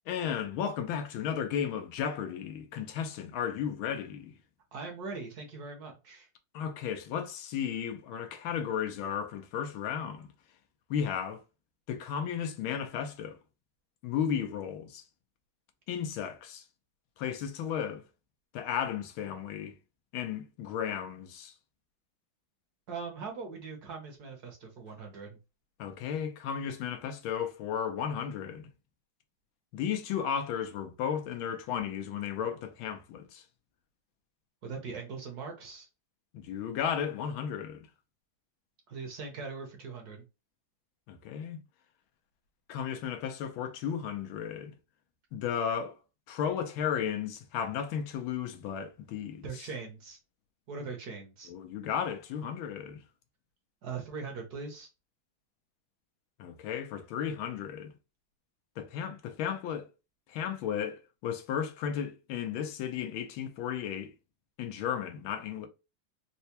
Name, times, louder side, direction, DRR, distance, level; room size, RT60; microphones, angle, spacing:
voice 1, 0.1-4.4 6.5-10.3 10.9-11.4 11.9-13.4 14.0-15.0 15.9-16.6 17.2-18.0 18.5-19.7 20.1-21.5 25.8-28.7 29.7-33.4 36.3-37.9 41.1-41.6 42.7-44.7 45.3-46.0 46.3-49.5 51.5-53.0 56.4-57.9 58.8-59.9 60.3-64.1 64.6-65.7, left 8 dB, 85° left, 1.5 m, -34 dB
voice 2, 4.7-6.3 22.9-25.4 34.6-35.9 38.9-40.2 49.4-50.2 50.7-51.5 53.8-54.9, right 4 dB, 60° right, 1.3 m, -41 dB
4.4 x 2.1 x 2.8 m
omnidirectional pair, 2.2 m